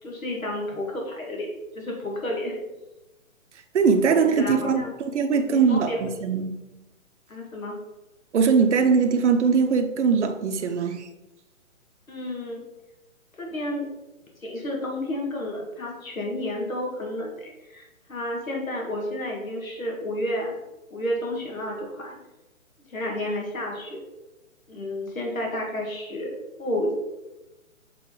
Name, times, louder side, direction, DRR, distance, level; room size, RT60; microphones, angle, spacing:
voice 1, 0.0-1.5 1.8-2.6 4.2-4.9 5.5-6.1 7.3-7.8 12.1-12.6 13.4-13.9 14.4-20.6 20.9-22.2 22.9-24.0 24.7-26.9, left 1 dB, 85° left, 2.0 m, -31 dB
voice 2, 3.7-6.6 8.3-11.1, right 5 dB, 60° right, 0.8 m, -21 dB
7.6 x 3.8 x 3.8 m
hypercardioid pair, 145°, 40 cm